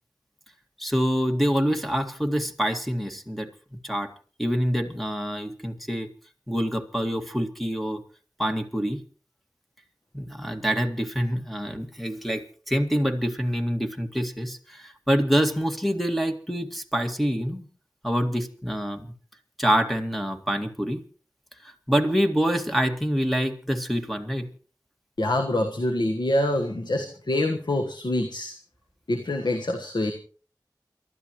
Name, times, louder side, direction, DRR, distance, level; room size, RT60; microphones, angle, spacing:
voice 1, 0.8-3.5 3.8-4.1 4.4-6.1 6.5-8.0 8.4-9.0 10.1-17.7 18.0-19.1 19.6-21.0 21.9-24.5, equal, ahead, 4 dB, 2.1 m, -26 dB
voice 2, 25.2-28.6 29.1-30.1, left 1 dB, 80° left, 3 dB, 1.3 m, -25 dB
28.5 x 13.0 x 3.1 m, 0.40 s
wide cardioid pair, 45°, 7 cm